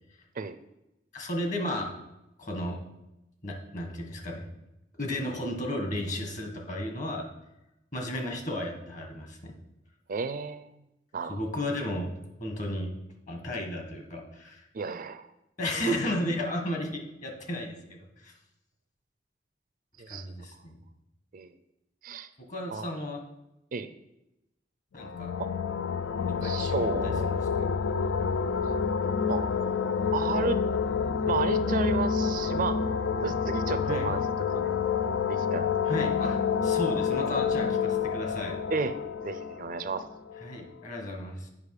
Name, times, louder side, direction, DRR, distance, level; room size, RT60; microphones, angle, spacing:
voice 1, 1.1-1.9 2.4-2.8 3.4-4.5 5.0-7.3 7.9-9.5 11.3-12.1 12.4-12.9 13.3-14.6 15.6-18.3 20.1-20.8 22.4-23.2 24.9-25.3 26.3-27.7 33.9-34.1 35.9-38.5 40.4-41.5, left 1 dB, 45° left, 3 dB, 1.6 m, -34 dB
voice 2, 10.1-10.7 11.1-11.4 14.7-15.3 20.0-20.3 21.3-21.5 22.0-22.3 22.7-22.8 23.7-23.9 25.4-25.5 26.4-27.3 29.3-29.5 30.1-30.6 31.3-32.8 33.2-34.2 34.5-34.7 35.3-35.9 38.7-38.9 39.2-40.1, right 4 dB, 50° right, 12 dB, 0.4 m, -32 dB
sound 1, 25.0-40.5, left 6 dB, 75° left, 0.4 m, -28 dB
8.3 x 5.6 x 4.8 m, 0.91 s
head